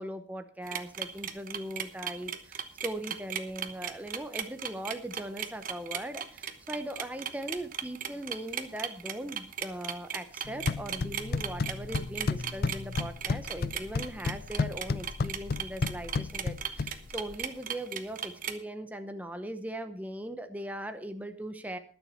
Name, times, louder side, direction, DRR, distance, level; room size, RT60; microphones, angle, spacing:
voice 1, 0.0-21.8, right 1 dB, 10° right, 8 dB, 0.7 m, -39 dB
sound 1, 0.7-18.5, right 8 dB, 45° right, 1.1 m, -36 dB
sound 2, 10.5-17.4, left 4 dB, 55° left, 0.5 m, -33 dB
20.5 x 7.1 x 4.4 m, 0.41 s
head